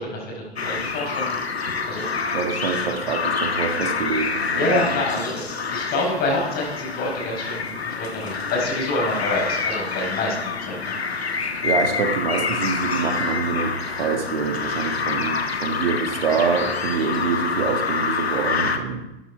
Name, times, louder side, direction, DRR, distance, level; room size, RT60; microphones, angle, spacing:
voice 1, 0.0-1.4 1.9-2.1 4.6-7.7 8.0-10.9, left 2 dB, 30° left, -1 dB, 5.5 m, -27 dB
sound 1, 0.6-18.8, left 5 dB, 80° left, 1.4 m, -27 dB
voice 2, 2.3-4.8 11.4-19.0, right 5 dB, 60° right, 5 dB, 1.8 m, -26 dB
14.0 x 9.0 x 4.9 m, 0.94 s
figure-of-eight pair, 105°, 31 cm